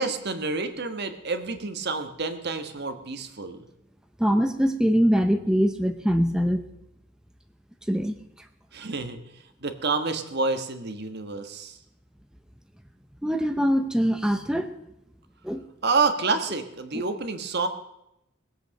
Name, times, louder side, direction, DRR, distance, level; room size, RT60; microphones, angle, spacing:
voice 1, 0.0-3.6 8.7-9.2 9.6-11.7 15.8-17.7, right 4 dB, 55° right, 8 dB, 1.4 m, -28 dB
voice 2, 4.2-6.6 7.9-8.5 13.2-14.8 15.4-15.6 16.9-17.0, equal, 5° right, 6 dB, 0.6 m, -23 dB
20.5 x 8.2 x 6.5 m, 0.83 s
head